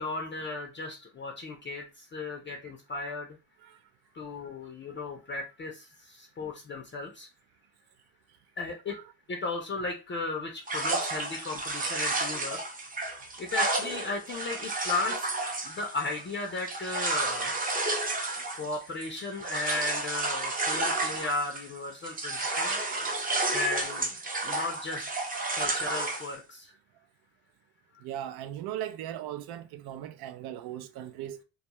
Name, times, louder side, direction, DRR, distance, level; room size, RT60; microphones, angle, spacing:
voice 1, 0.0-3.3 4.1-7.3 8.6-9.0 9.3-12.6 13.4-15.2 15.6-17.5 18.6-22.8 23.5-24.1 24.4-25.0 25.5-26.7, left 3 dB, 25° left, 0.5 m, -35 dB
sound 1, 10.7-21.8 22.0-26.3, right 2 dB, 20° right, 0.6 m, -31 dB
voice 2, 28.0-31.4, right 11 dB, 60° right, 0.5 m, -38 dB
2.3 x 2.2 x 2.8 m
supercardioid pair, 85°, 42 cm